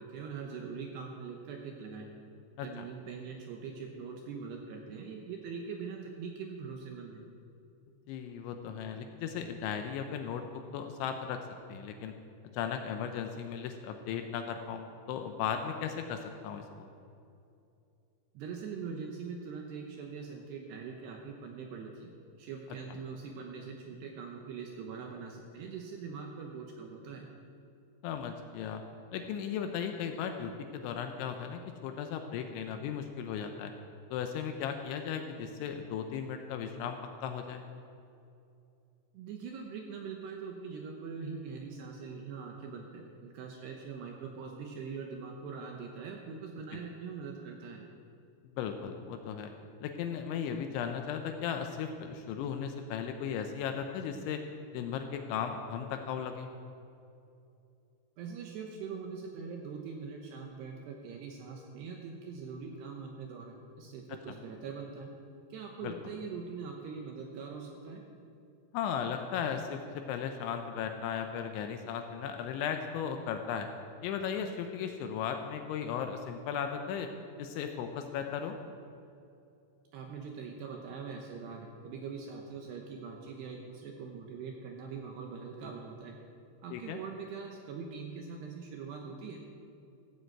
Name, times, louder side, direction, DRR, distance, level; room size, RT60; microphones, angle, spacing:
voice 1, 0.0-2.1 2.6-7.2 18.3-22.1 22.4-27.3 39.1-47.8 58.2-65.1 65.5-68.0 79.9-86.2 86.6-89.4, right 5 dB, 75° right, 2 dB, 2.6 m, -42 dB
voice 2, 8.1-11.4 11.7-12.1 12.5-16.9 28.0-28.8 29.1-33.7 34.1-37.6 48.6-49.5 49.8-54.4 54.7-56.5 65.8-65.9 68.7-73.7 74.0-77.1 77.4-78.6 86.7-87.0, left 7 dB, 80° left, 5 dB, 2.8 m, -36 dB
15.0 x 8.0 x 7.8 m, 2.6 s
omnidirectional pair, 5.8 m